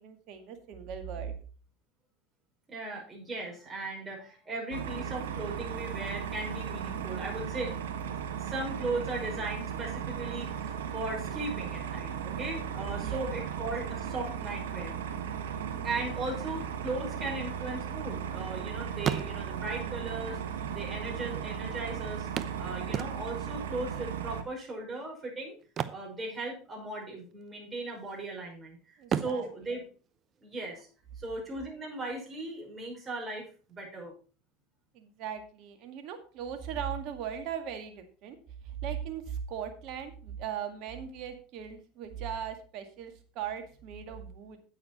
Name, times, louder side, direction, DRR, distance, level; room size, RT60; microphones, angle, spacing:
voice 1, 0.0-1.4 13.0-13.4 29.0-29.5 34.9-38.4 38.6-44.6, right 8 dB, 60° right, 7 dB, 1.9 m, -38 dB
voice 2, 2.7-7.7 8.4-14.9 15.8-22.3 22.6-25.6 25.9-29.8 30.4-30.9 31.2-34.1, right 2 dB, 25° right, -1 dB, 5.3 m, -37 dB
sound 1, 4.7-24.4, right 8 dB, 80° right, 1.1 m, -36 dB
sound 2, 19.0-19.8 20.7-20.8 21.0-21.1 22.4-23.5 25.6-26.9 27.2-27.4 27.9-28.5 29.0-30.8 32.8-32.9 33.3-33.4, right 8 dB, 40° right, 0.8 m, -36 dB
9.3 x 8.5 x 4.2 m, 0.38 s
hypercardioid pair, 85°, 0 cm